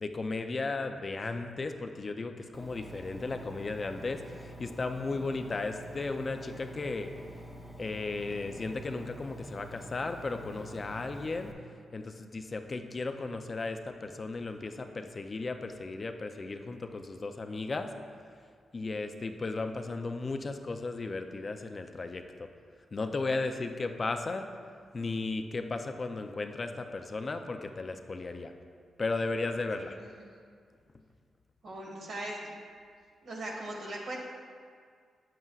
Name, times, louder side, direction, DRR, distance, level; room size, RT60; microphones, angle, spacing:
voice 1, 0.0-7.1 7.8-11.5 11.9-17.9 18.7-22.5 22.9-24.5 24.9-28.5 29.0-30.0, left 3 dB, 40° left, 6 dB, 0.4 m, -35 dB
Engine, 2.5-11.5, equal, 5° right, 1.0 m, -47 dB
voice 2, 29.8-30.3 31.6-32.5 33.2-34.2, right 1 dB, 75° right, -3 dB, 1.6 m, -40 dB
7.8 x 7.5 x 2.4 m, 2.1 s
cardioid pair, 70°, 0 cm